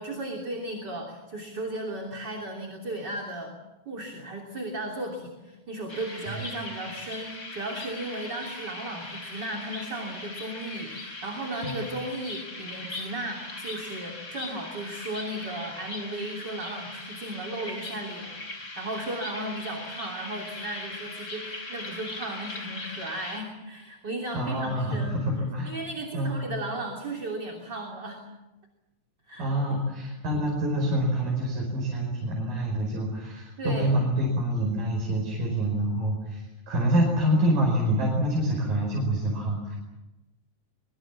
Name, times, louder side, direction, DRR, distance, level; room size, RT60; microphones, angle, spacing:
voice 1, 0.0-3.5 3.8-25.2 25.6-28.2 29.3-29.5 33.6-33.9, right 1 dB, 30° right, 1 dB, 3.4 m, -35 dB
sound 1, 5.9-23.4, left 2 dB, 25° left, 5.3 m, -39 dB
voice 2, 24.3-25.7 26.1-26.4 29.4-39.8, right 1 dB, 70° right, 0 dB, 6.9 m, -26 dB
24.5 x 23.5 x 7.4 m, 1.0 s
omnidirectional pair, 4.1 m